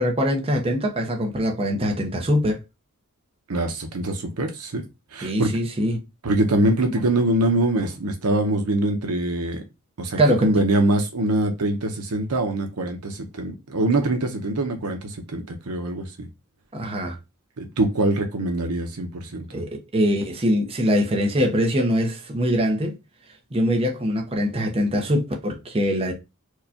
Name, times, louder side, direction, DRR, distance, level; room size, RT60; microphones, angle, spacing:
voice 1, 0.0-2.6 5.2-6.0 10.2-10.5 16.7-17.1 19.5-22.9 23.5-26.1, equal, 25° right, 0.8 m, -23 dB
voice 2, 3.5-4.8 5.1-5.5 6.2-9.6 10.0-16.3 17.6-19.5, right 1 dB, 75° right, 0.8 m, -23 dB
4.6 x 2.3 x 2.7 m
head